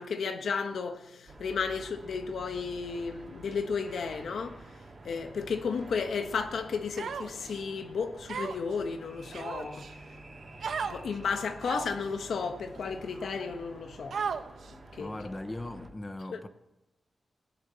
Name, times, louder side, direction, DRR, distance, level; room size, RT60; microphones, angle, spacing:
voice 1, 0.0-4.6 5.0-9.8 10.9-14.2 14.9-15.1 16.3-16.4, left 5 dB, 80° left, 1.4 m, -33 dB
sound 1, 1.3-15.9, right 2 dB, 35° right, 3.0 m, -49 dB
Human voice, 7.0-7.6 8.3-8.7 9.3-9.9 10.6-11.0 11.6-12.0 12.7-12.8 14.1-14.7, right 6 dB, 80° right, 1.0 m, -35 dB
voice 2, 15.0-16.5, left 2 dB, 15° left, 0.9 m, -39 dB
17.5 x 9.9 x 7.1 m
wide cardioid pair, 140°, 0 cm